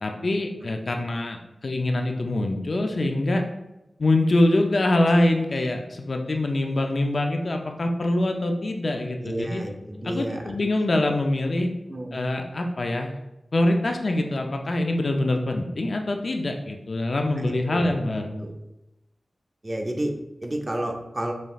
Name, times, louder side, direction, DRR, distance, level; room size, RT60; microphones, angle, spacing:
voice 1, 0.0-3.4 4.0-9.6 10.0-11.7 12.1-13.1 13.5-18.5, left 1 dB, 60° left, 3 dB, 0.4 m, -24 dB
voice 2, 9.2-10.6 11.9-12.2 17.5-18.0 18.4-18.5 19.6-21.3, right 1 dB, 25° right, 3 dB, 0.5 m, -31 dB
5.4 x 3.1 x 2.3 m, 0.92 s
wide cardioid pair, 85°, 0 cm